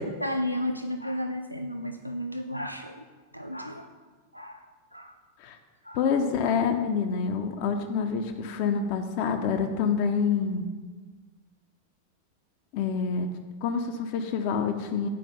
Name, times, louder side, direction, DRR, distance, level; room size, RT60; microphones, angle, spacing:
voice 1, 0.0-3.1 3.3-3.9 4.3-4.7 4.9-5.2 5.8-6.0, left 1 dB, 90° right, 6 dB, 0.4 m, -33 dB
voice 2, 5.9-10.7 12.7-13.3 13.6-15.1, left 6 dB, 45° left, 6 dB, 0.6 m, -27 dB
9.2 x 4.9 x 5.4 m, 1.4 s
figure-of-eight pair, 90°, 0 cm